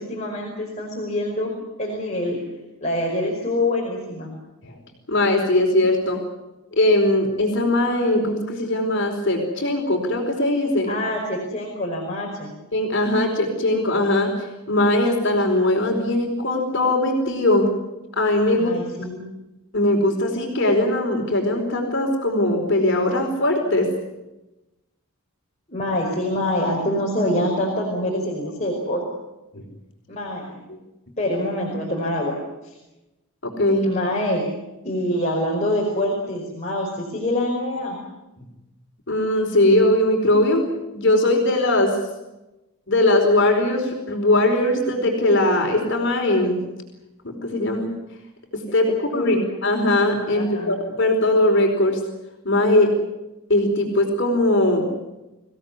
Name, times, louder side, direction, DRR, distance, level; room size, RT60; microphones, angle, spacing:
voice 1, 0.0-1.5 1.8-2.4 2.8-4.3 10.9-12.5 18.5-19.3 25.7-29.0 30.1-30.5 31.2-32.3 32.6-32.7 33.8-34.4 34.8-38.0 48.9-49.5 50.3-50.7, left 1 dB, 30° left, -2 dB, 5.3 m, -25 dB
voice 2, 5.1-6.2 6.7-10.9 12.7-14.3 14.7-17.7 18.2-18.7 19.7-23.9 29.5-29.6 30.7-30.8 33.4-33.9 39.1-40.6 40.9-42.0 42.9-46.6 47.2-47.9 48.5-49.4 49.6-52.0 52.4-53.0 53.5-54.9, left 1 dB, 55° left, 2 dB, 4.7 m, -20 dB
25.0 x 17.0 x 9.8 m, 1.0 s
head